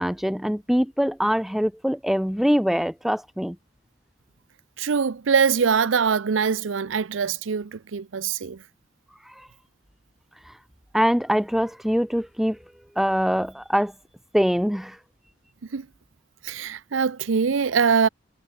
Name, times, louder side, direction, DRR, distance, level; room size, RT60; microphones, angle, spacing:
voice 1, 0.0-3.6 10.9-12.6 13.0-13.9 14.3-15.0, equal, ahead, 0.7 m, -23 dB
voice 2, 4.8-8.6 15.7-15.9 16.4-18.1, right 6 dB, 90° right, 0.6 m, -23 dB
head